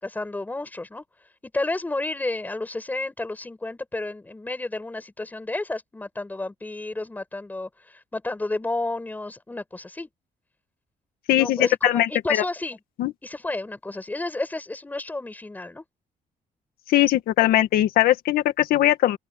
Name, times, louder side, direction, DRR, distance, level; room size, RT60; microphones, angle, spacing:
voice 1, 0.0-1.0 1.5-10.1 11.3-12.8 13.2-15.8, left 2 dB, 10° left, 7.1 m, -31 dB
voice 2, 11.3-12.4 13.0-13.1 16.9-19.2, left 13 dB, 90° left, 2.0 m, -20 dB
open air
cardioid pair, 165°, 15 cm